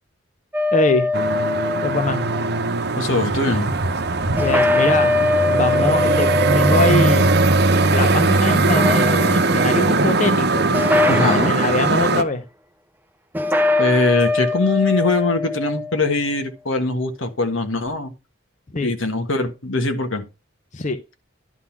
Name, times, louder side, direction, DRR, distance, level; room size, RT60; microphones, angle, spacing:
sound 1, 0.5-2.6 4.4-8.1 8.6-9.6 10.7-11.9 13.3-16.1, left 2 dB, 10° right, 0.5 m, -22 dB
voice 1, 0.7-1.1 1.8-2.3 4.4-5.2 5.5-6.3 6.5-7.3 7.9-10.7 11.2-12.4 18.7-18.9 20.7-21.0, left 2 dB, 40° left, 0.7 m, -23 dB
sound 2, 1.1-12.2, right 3 dB, 55° right, 0.9 m, -19 dB
voice 2, 3.0-3.7 11.1-11.5 13.8-18.1 18.8-20.2, left 2 dB, 80° left, 1.6 m, -21 dB
11.0 x 3.8 x 5.9 m
head